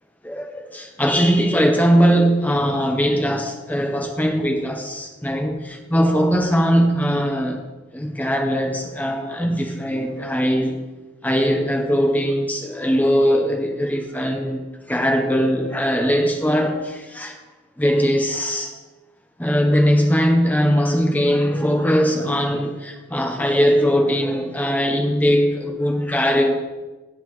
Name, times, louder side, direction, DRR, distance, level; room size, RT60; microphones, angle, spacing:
voice 1, 0.2-7.6 7.9-10.8 11.2-14.6 14.9-17.4 17.8-18.8 19.4-26.6, equal, 10° left, 3 dB, 0.9 m, -20 dB
17.0 x 7.3 x 3.2 m, 1.2 s
head